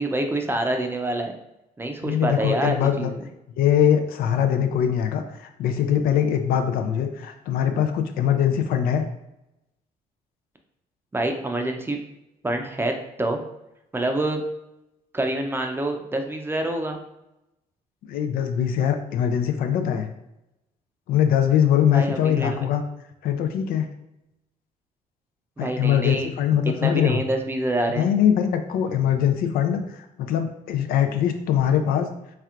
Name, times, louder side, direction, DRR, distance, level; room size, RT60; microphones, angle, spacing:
voice 1, 0.0-1.3 1.8-3.2 11.1-12.0 12.4-12.9 13.2-13.4 13.9-14.4 15.1-17.0 21.9-22.7 25.6-26.3 26.8-28.1, right 1 dB, 15° right, 4 dB, 0.5 m, -26 dB
voice 2, 2.0-3.1 3.6-9.0 18.1-20.1 21.1-22.8 23.2-23.9 25.6-27.2 28.0-32.1, left 9 dB, 80° left, 6 dB, 0.5 m, -22 dB
4.3 x 3.3 x 2.4 m, 0.87 s
cardioid pair, 100°, 15 cm